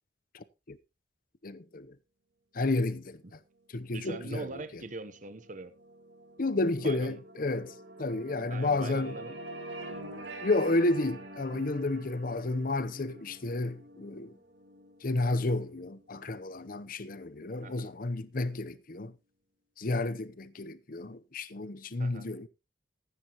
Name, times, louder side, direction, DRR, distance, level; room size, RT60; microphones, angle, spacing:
voice 1, 0.3-0.8 1.4-1.9 2.5-3.2 3.7-4.5 6.4-9.2 10.4-14.4 15.0-19.1 19.8-22.5, left 2 dB, 50° left, 0.8 m, -31 dB
voice 2, 3.9-5.7 6.8-7.2 8.5-9.4 17.6-17.9 22.0-22.3, right 3 dB, 45° right, 1.0 m, -42 dB
sound 1, 4.5-16.7, right 1 dB, 75° right, 2.5 m, -47 dB
14.5 x 10.0 x 3.0 m
head